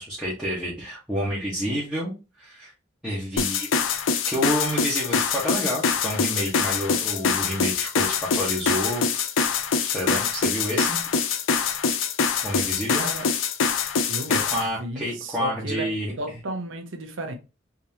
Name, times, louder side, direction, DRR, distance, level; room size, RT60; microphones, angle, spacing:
voice 1, 0.0-2.7 3.0-3.7 4.3-9.3 9.8-11.0 12.4-13.1 14.3-16.1, equal, 5° right, 1.0 m, -29 dB
sound 1, 3.4-14.7, left 5 dB, 70° left, 0.5 m, -24 dB
voice 2, 13.0-13.3 14.1-15.9 16.2-17.3, right 2 dB, 70° right, 0.7 m, -34 dB
3.6 x 2.9 x 2.7 m
head